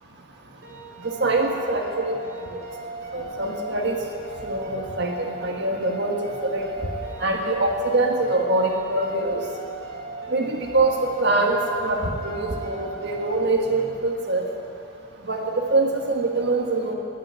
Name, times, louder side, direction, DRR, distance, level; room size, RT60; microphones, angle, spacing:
sound 1, 0.6-13.4, right 3 dB, 90° right, 3.6 m, -38 dB
voice 1, 1.2-2.1 3.1-4.0 4.4-6.7 7.2-9.4 10.3-14.4 15.2-16.9, right 2 dB, 55° right, 1 dB, 1.7 m, -24 dB
10.5 x 9.5 x 9.3 m, 2.7 s
head